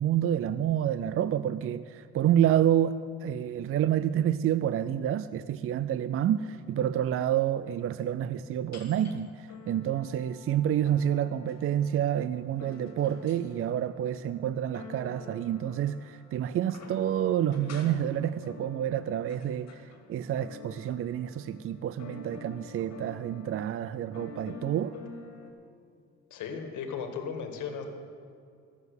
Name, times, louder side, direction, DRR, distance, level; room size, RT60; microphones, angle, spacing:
voice 1, 0.0-19.8 20.1-25.0, right 10 dB, 50° right, 14 dB, 0.4 m, -28 dB
sound 1, 8.7-9.2 9.5-25.5, left 4 dB, 60° left, 2.0 m, -48 dB
voice 2, 26.3-27.9, left 6 dB, 80° left, 5 dB, 1.7 m, -36 dB
14.5 x 7.2 x 8.0 m, 2.4 s
cardioid pair, 90°, 30 cm